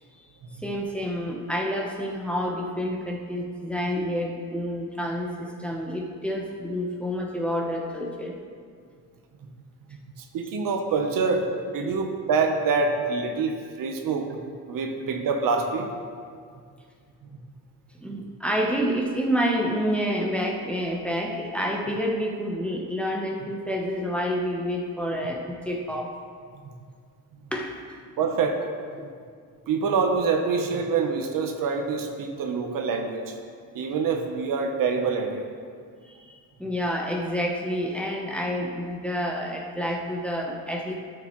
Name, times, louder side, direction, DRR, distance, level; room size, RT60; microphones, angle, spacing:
voice 1, 0.6-8.4 18.0-26.1 27.5-27.8 36.0-40.9, equal, 5° left, -1 dB, 0.9 m, -28 dB
voice 2, 10.2-14.4 14.7-15.9 28.2-28.6 29.7-33.4 33.7-35.4, right 4 dB, 65° right, 4 dB, 1.0 m, -26 dB
13.0 x 6.7 x 3.1 m, 2.1 s
cardioid pair, 120°, 36 cm